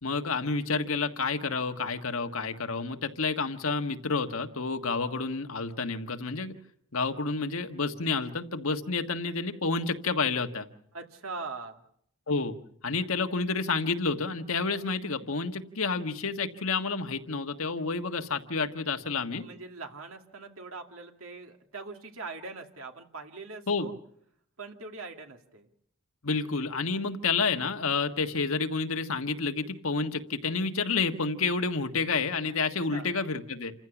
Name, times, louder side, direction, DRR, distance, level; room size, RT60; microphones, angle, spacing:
voice 1, 0.0-6.5 6.9-10.7 12.3-12.6 12.8-19.4 23.7-23.9 26.2-33.7, left 4 dB, 85° left, 7 dB, 1.5 m, -29 dB
voice 2, 10.9-11.8 19.4-24.0 24.6-25.7 32.9-33.1, right 3 dB, 90° right, 4 dB, 2.5 m, -42 dB
28.5 x 15.0 x 7.1 m, 0.70 s
head